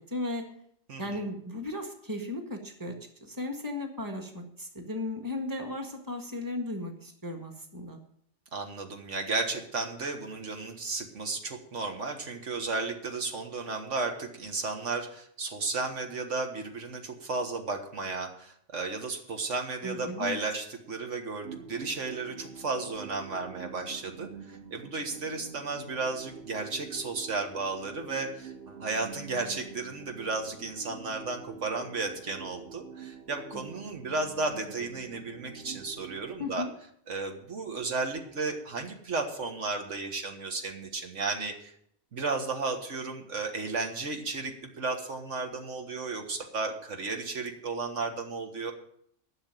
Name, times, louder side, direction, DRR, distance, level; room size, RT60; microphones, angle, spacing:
voice 1, 0.1-0.5 1.0-2.9 3.2-8.0 19.8-20.4 33.5-33.6 36.4-36.7, left 2 dB, 15° right, 4 dB, 1.7 m, -36 dB
voice 2, 0.9-1.2 8.5-36.6 37.1-41.7 42.1-48.7, right 3 dB, 85° right, 4 dB, 1.8 m, -34 dB
sound 1, 21.4-36.4, right 6 dB, 60° right, 1.3 m, -46 dB
11.5 x 6.6 x 8.9 m, 0.68 s
omnidirectional pair, 1.2 m